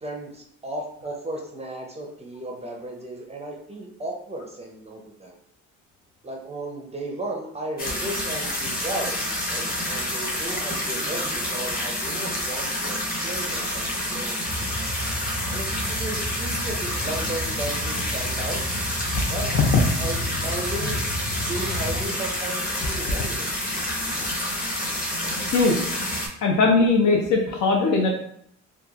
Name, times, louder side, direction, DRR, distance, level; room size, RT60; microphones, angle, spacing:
voice 1, 0.0-5.3 6.2-14.7 15.5-18.6 19.3-19.5 20.0-21.0 21.4-23.5, right 1 dB, 20° right, 0 dB, 0.5 m, -35 dB
sound 1, 7.8-26.3, left 1 dB, 30° left, 0.8 m, -28 dB
sound 2, 14.4-22.0, equal, 90° right, 0.5 m, -34 dB
voice 2, 19.1-20.1 20.8-20.9 23.2-23.3 23.8-23.9 25.5-25.8 26.4-28.1, left 3 dB, 75° left, 0 dB, 0.5 m, -20 dB
2.9 x 2.2 x 2.3 m, 0.68 s
cardioid pair, 90°, 30 cm